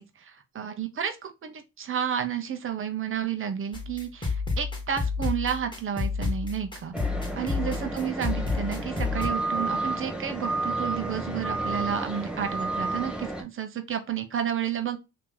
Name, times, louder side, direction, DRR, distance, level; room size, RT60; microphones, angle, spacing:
voice 1, 0.2-6.9 7.4-15.0, right 8 dB, 45° right, 0.8 m, -31 dB
sound 1, 3.7-9.3, left 4 dB, 15° left, 1.5 m, -30 dB
sound 2, 6.9-13.4, right 2 dB, 5° right, 0.8 m, -31 dB
2.9 x 2.9 x 3.7 m
cardioid pair, 90°, 30 cm